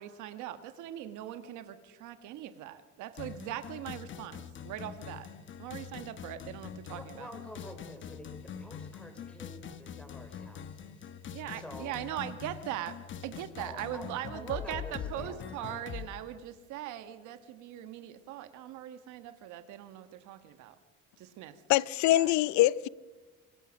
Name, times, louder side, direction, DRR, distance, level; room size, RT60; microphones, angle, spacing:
voice 1, 0.0-5.3 5.6-7.3 11.3-13.0 13.2-20.8 21.2-21.6 22.1-22.3, right 12 dB, 75° right, 1.4 m, -40 dB
sound 1, 3.2-16.1, left 8 dB, 40° left, 1.1 m, -44 dB
voice 2, 6.9-11.1 11.5-12.1 13.6-15.9, equal, 5° left, 4.2 m, -48 dB
voice 3, 21.7-22.9, left 15 dB, 70° left, 0.6 m, -24 dB
25.0 x 20.0 x 6.4 m
cardioid pair, 135°, 30 cm